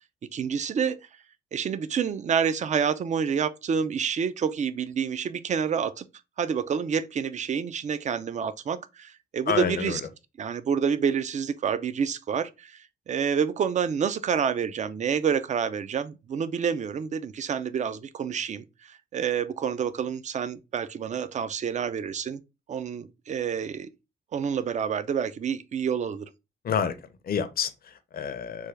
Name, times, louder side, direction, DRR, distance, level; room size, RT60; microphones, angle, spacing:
voice 1, 0.3-1.0 1.5-6.0 6.4-10.0 10.4-22.4 22.7-23.9 24.3-26.3, right 7 dB, 35° right, 0.4 m, -28 dB
voice 2, 9.5-10.0 26.6-28.7, left 7 dB, 45° left, 0.5 m, -29 dB
3.4 x 2.2 x 3.2 m
cardioid pair, 75°, 21 cm